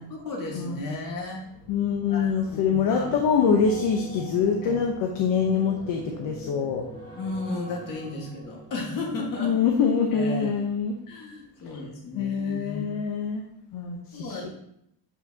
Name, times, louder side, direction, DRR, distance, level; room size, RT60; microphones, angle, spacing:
voice 1, 0.1-1.4 2.1-3.1 4.6-4.7 7.2-9.5 10.1-10.5 11.1-12.8 14.1-14.4, left 2 dB, 45° left, -1 dB, 1.7 m, -34 dB
sound 1, 1.1-10.4 10.8-11.1, right 1 dB, 20° left, 1.9 m, -44 dB
voice 2, 1.7-6.9 9.4-10.9 12.1-14.5, left 6 dB, 70° left, 2 dB, 0.9 m, -25 dB
8.3 x 5.5 x 2.8 m, 0.77 s
cardioid pair, 155°, 45 cm